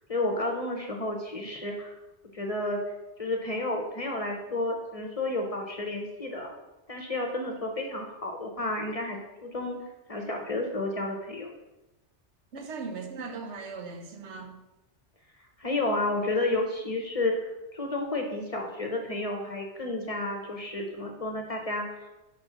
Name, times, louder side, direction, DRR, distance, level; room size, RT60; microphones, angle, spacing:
voice 1, 0.1-1.9 2.3-2.8 3.2-6.5 6.9-9.8 10.1-11.5 15.6-22.1, left 2 dB, 35° left, 2 dB, 0.7 m, -31 dB
voice 2, 12.5-14.5, right 4 dB, 80° right, 5 dB, 1.1 m, -38 dB
4.8 x 4.2 x 5.9 m, 1.0 s
omnidirectional pair, 1.2 m